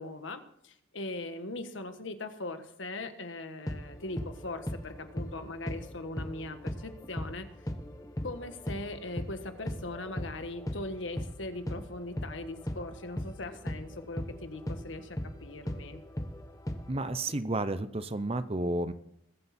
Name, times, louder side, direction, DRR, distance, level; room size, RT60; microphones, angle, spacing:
voice 1, 0.0-7.7 8.2-16.0, left 2 dB, 70° left, 8 dB, 1.5 m, -40 dB
sound 1, 3.6-11.4 11.7-17.4, left 1 dB, 15° left, 1.1 m, -38 dB
voice 2, 16.9-18.9, right 2 dB, 30° right, 13 dB, 0.7 m, -31 dB
21.5 x 8.3 x 4.3 m, 0.72 s
head